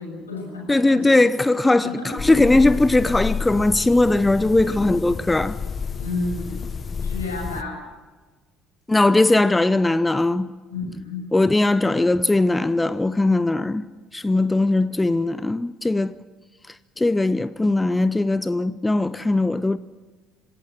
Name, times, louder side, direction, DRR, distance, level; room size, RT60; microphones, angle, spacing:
voice 1, 0.0-1.3 1.8-2.4 4.6-4.9 6.0-6.6 7.0-7.8 10.7-11.2, left 3 dB, 85° left, 6.7 m, -31 dB
voice 2, 0.7-5.6 8.9-10.5 11.3-13.9 14.1-16.2 17.0-19.8, left 2 dB, 15° left, 0.6 m, -19 dB
sound 1, 2.2-7.6, left 5 dB, 35° left, 1.3 m, -30 dB
27.0 x 18.0 x 6.4 m
figure-of-eight pair, 55°, 0 cm